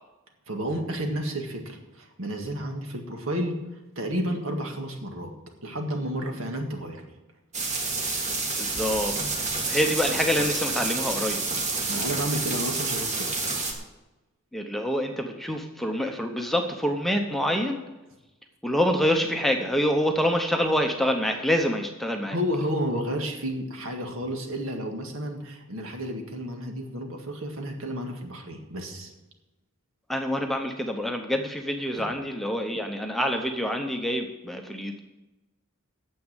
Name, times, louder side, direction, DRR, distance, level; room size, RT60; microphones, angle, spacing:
voice 1, 0.5-3.6 4.0-5.3 5.6-7.0 11.9-13.3 22.3-29.1 32.0-32.1, equal, 75° right, 3 dB, 1.8 m, -31 dB
sound 1, 7.5-13.7, right 3 dB, 35° right, 1.6 m, -29 dB
voice 2, 8.6-9.2 9.6-11.4 14.5-17.8 18.6-22.4 30.1-35.0, equal, ahead, 3 dB, 0.7 m, -26 dB
9.3 x 7.3 x 8.9 m, 1.0 s
head